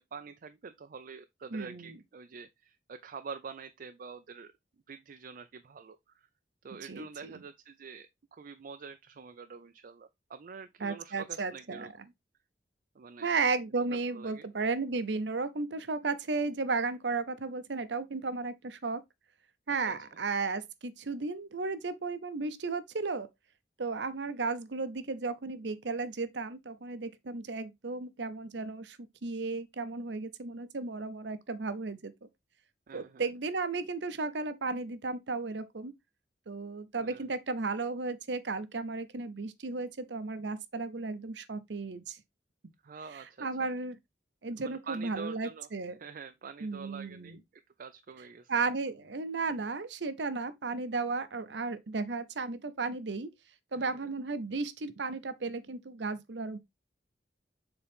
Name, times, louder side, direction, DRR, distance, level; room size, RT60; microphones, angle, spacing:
voice 1, 0.0-4.5 4.9-6.3 6.6-12.1 12.9-13.3 13.9-14.4 19.9-20.0 32.9-33.2 37.0-37.2 42.8-43.5 44.6-45.7 46.0-47.4 47.8-48.5 53.7-54.1, right 5 dB, 55° right, 0.4 m, -46 dB
voice 2, 1.5-2.0 6.9-7.4 10.8-11.9 13.2-19.0 19.7-23.3 23.8-32.1 32.9-35.9 36.5-42.2 43.4-44.0 44.4-46.0 46.6-47.4 48.5-53.3 53.7-56.6, right 4 dB, 85° right, 0.8 m, -34 dB
7.0 x 3.8 x 3.5 m
head